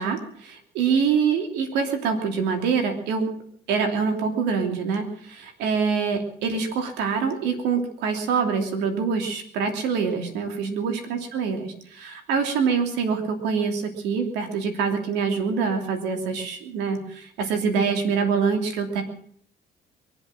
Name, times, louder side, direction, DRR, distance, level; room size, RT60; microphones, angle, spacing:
voice 1, 0.0-3.3 3.7-19.0, right 5 dB, 90° right, 5 dB, 3.0 m, -25 dB
23.0 x 7.9 x 7.4 m, 0.62 s
cardioid pair, 110°, 17 cm